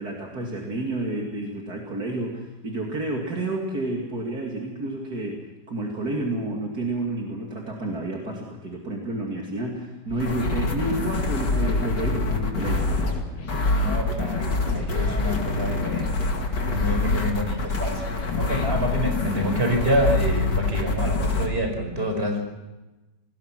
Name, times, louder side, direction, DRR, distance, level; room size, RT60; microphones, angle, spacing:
voice 1, 0.0-13.1 16.6-17.2, right 2 dB, 60° right, -1 dB, 3.2 m, -30 dB
sound 1, 10.1-21.5, left 3 dB, 80° left, 3.0 m, -25 dB
voice 2, 13.7-18.0 18.4-22.4, equal, 35° right, 3 dB, 5.3 m, -27 dB
27.0 x 20.0 x 6.1 m, 1.1 s
omnidirectional pair, 1.8 m